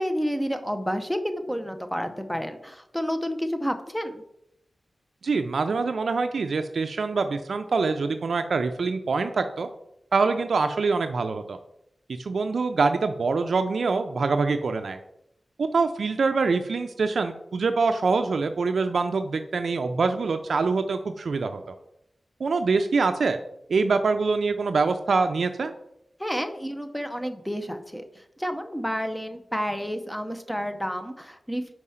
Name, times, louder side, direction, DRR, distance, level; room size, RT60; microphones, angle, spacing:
voice 1, 0.0-4.2 26.2-31.7, equal, 5° left, 7 dB, 0.7 m, -30 dB
voice 2, 5.2-9.7 10.1-11.6 12.2-15.0 15.6-21.6 22.4-23.4 23.7-25.7, right 4 dB, 85° right, 7 dB, 0.4 m, -24 dB
4.8 x 4.6 x 5.6 m, 0.79 s
wide cardioid pair, 80°, 0 cm